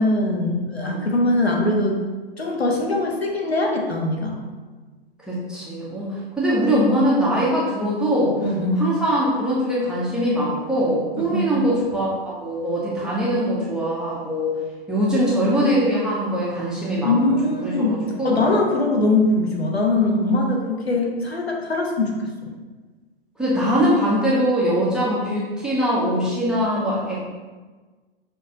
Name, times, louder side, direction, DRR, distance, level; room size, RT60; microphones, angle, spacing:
voice 1, 0.0-2.0 2.4-4.4 8.4-8.9 11.2-11.5 17.0-22.1 22.4-22.5, left 2 dB, 90° left, 0 dB, 0.8 m, -21 dB
voice 2, 5.3-8.3 8.8-14.6 14.9-17.2 17.6-18.4 23.4-27.2, equal, 5° right, -7 dB, 0.3 m, -22 dB
5.3 x 2.2 x 2.6 m, 1.3 s
figure-of-eight pair, 110°, 30 cm